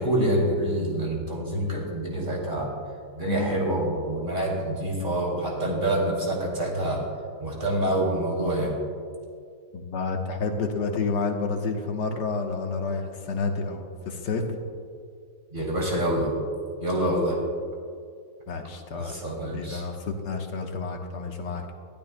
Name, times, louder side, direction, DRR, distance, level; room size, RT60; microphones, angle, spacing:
voice 1, 0.0-2.7 3.2-7.0 7.4-8.7 15.5-16.3 16.8-17.4 18.9-19.8, right 1 dB, 30° right, -2 dB, 3.0 m, -26 dB
voice 2, 9.7-14.4 16.9-17.1 18.5-21.7, left 4 dB, 75° left, 3 dB, 1.7 m, -30 dB
21.5 x 12.0 x 2.2 m, 2.3 s
omnidirectional pair, 1.8 m